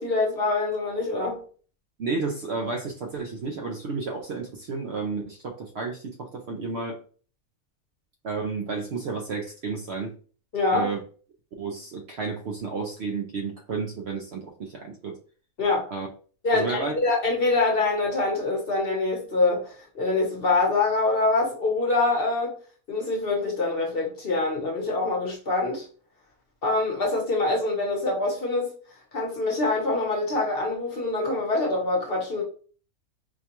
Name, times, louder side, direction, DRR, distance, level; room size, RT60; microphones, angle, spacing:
voice 1, 0.0-1.4 10.5-10.9 15.6-15.9 16.4-22.5 22.9-25.8 26.6-28.7 29.1-32.4, left 3 dB, 45° left, 1.0 m, -25 dB
voice 2, 2.0-7.0 8.2-10.1 10.7-11.0 11.6-15.2 15.9-16.1 16.5-16.9, right 4 dB, 60° right, 0.7 m, -31 dB
4.4 x 2.3 x 2.9 m
omnidirectional pair, 1.5 m